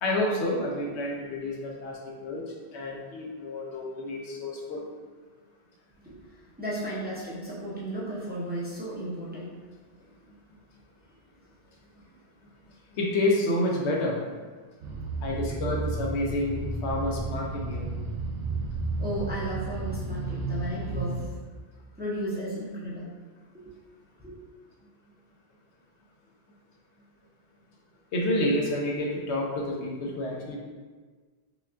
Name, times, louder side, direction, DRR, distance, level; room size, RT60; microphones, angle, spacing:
voice 1, 0.0-4.8 12.9-14.2 15.2-18.0 28.1-30.6, left 1 dB, 85° left, -2 dB, 1.0 m, -29 dB
voice 2, 6.0-9.6 15.4-15.5 19.0-21.2 22.0-23.1 23.6-23.7 24.2-24.4, right 1 dB, 10° right, -8 dB, 0.6 m, -34 dB
sound 1, 14.8-21.3, right 3 dB, 70° right, 0.8 m, -32 dB
4.9 x 2.3 x 2.5 m, 1.4 s
omnidirectional pair, 1.1 m